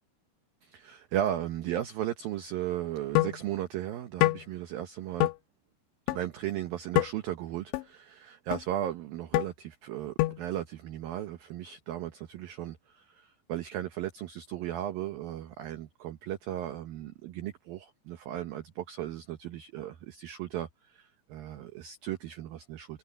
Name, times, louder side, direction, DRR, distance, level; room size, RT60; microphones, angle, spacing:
voice 1, 0.6-5.3 6.1-23.0, right 12 dB, 80° right, 2.1 m, -36 dB
sound 1, 3.2-3.4 4.2-4.4 5.2-5.4 6.1-6.2 7.0-7.1 7.7-7.8 8.5-8.6 9.3-9.5 10.2-10.4, left 18 dB, 80° left, 2.7 m, -25 dB
omnidirectional pair, 5.7 m